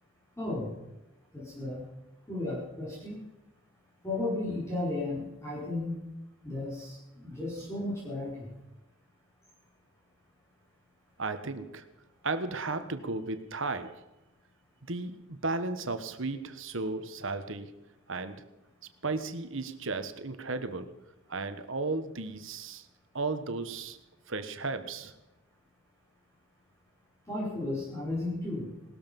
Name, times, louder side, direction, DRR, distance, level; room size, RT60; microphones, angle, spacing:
voice 1, 0.4-0.7 1.3-1.8 2.3-3.2 4.0-6.0 6.4-8.5 27.3-28.7, left 2 dB, 15° left, -6 dB, 4.9 m, -34 dB
voice 2, 11.2-11.8 12.2-14.0 14.9-17.7 18.1-18.4 19.0-20.9 21.3-22.8 23.1-24.0 24.3-25.1, right 3 dB, 65° right, 10 dB, 1.4 m, -34 dB
19.0 x 13.5 x 5.4 m, 0.97 s
head